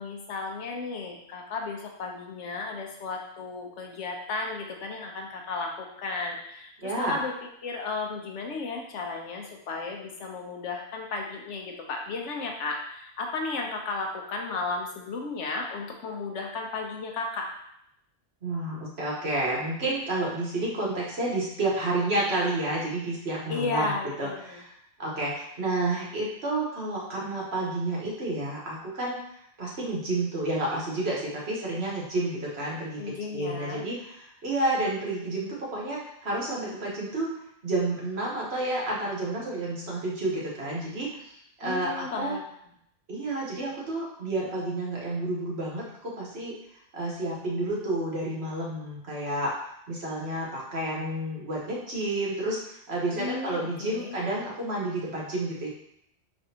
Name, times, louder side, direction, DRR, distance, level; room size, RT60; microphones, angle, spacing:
voice 1, 0.0-7.3 7.6-17.5 23.5-24.6 33.0-33.9 41.6-42.4 53.1-54.2, left 3 dB, 80° left, 1 dB, 1.1 m, -34 dB
voice 2, 6.8-7.2 18.4-23.9 24.2-24.7 25.0-29.2 29.6-37.3 37.6-42.3 43.1-46.5 46.9-49.5 49.9-55.7, right 2 dB, 60° right, -4 dB, 1.5 m, -30 dB
5.2 x 3.4 x 2.8 m, 0.75 s
omnidirectional pair, 1.2 m